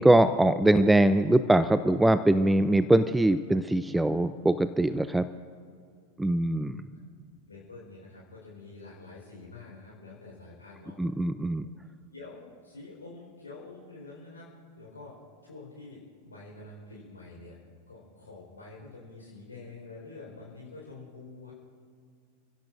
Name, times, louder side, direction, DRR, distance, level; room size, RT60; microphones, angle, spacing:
voice 1, 0.0-5.3 6.2-6.8 11.0-11.7, right 1 dB, 5° right, 13 dB, 0.4 m, -22 dB
voice 2, 7.5-11.0 11.6-11.7 12.1-14.5 14.7-17.6 17.9-21.5, left 3 dB, 75° left, -4 dB, 4.3 m, -47 dB
29.0 x 16.0 x 2.6 m, 2.2 s
figure-of-eight pair, 90°, 0 cm